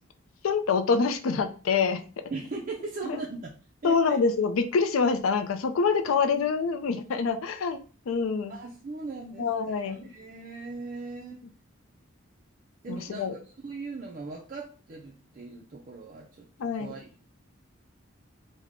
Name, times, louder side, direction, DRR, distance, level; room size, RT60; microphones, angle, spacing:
voice 1, 0.4-2.0 3.1-3.2 3.8-8.5 9.4-10.1 12.9-13.3 16.6-16.9, left 5 dB, 90° left, 9 dB, 0.4 m, -26 dB
voice 2, 2.3-3.5 3.8-4.2 6.1-6.4 8.5-11.4 12.8-16.5 16.7-17.2, right 3 dB, 40° right, 1 dB, 0.4 m, -39 dB
3.5 x 2.1 x 3.5 m, 0.38 s
head